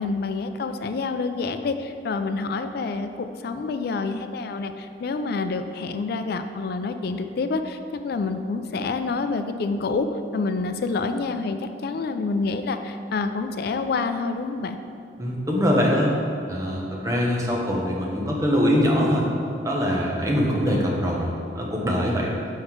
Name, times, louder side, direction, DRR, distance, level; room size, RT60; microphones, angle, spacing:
voice 1, 0.0-10.1 10.3-14.8, left 4 dB, 60° left, 9 dB, 0.4 m, -27 dB
voice 2, 15.2-16.1 16.5-19.3 19.6-21.3 21.5-22.3, equal, 20° right, -2 dB, 1.0 m, -23 dB
5.9 x 5.3 x 4.5 m, 2.5 s
head